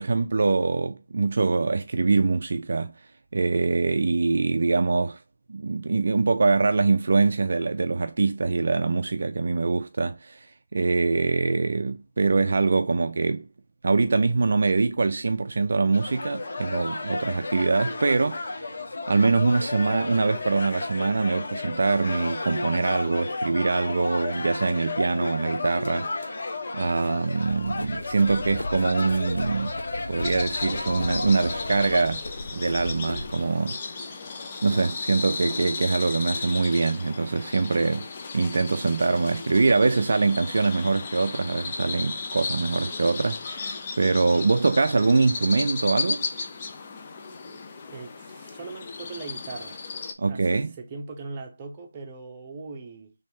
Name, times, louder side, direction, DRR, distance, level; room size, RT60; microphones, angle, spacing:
voice 1, 0.0-2.9 3.3-5.2 5.5-13.5 13.8-18.7 19.1-26.3 26.7-29.7 30.1-32.2 32.5-33.8 34.6-38.1 38.3-46.2 50.2-50.7, right 3 dB, 55° right, 0.4 m, -24 dB
sound 1, 15.9-32.0, left 3 dB, 50° left, 1.0 m, -33 dB
Run, 27.4-33.4, left 1 dB, 80° left, 0.5 m, -37 dB
sound 2, 30.2-50.1, left 4 dB, 30° left, 0.6 m, -35 dB
voice 2, 47.9-49.8 50.3-50.5 50.8-53.1, right 3 dB, 20° right, 0.8 m, -39 dB
4.4 x 3.2 x 2.7 m
figure-of-eight pair, 165°, 0 cm